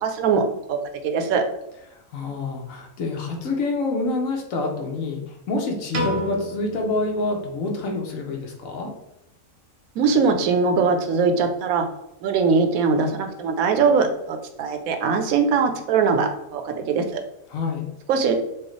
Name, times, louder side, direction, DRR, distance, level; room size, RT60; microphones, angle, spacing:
voice 1, 0.0-0.8 1.0-1.4 10.0-11.9 12.2-17.1 18.1-18.3, right 5 dB, 80° right, 5 dB, 1.0 m, -21 dB
voice 2, 1.9-8.9 17.5-17.9, left 3 dB, 70° left, 1 dB, 1.1 m, -27 dB
Piano, 5.9-8.2, right 2 dB, 50° right, 0.9 m, -32 dB
4.6 x 2.3 x 3.1 m, 0.84 s
omnidirectional pair, 1.5 m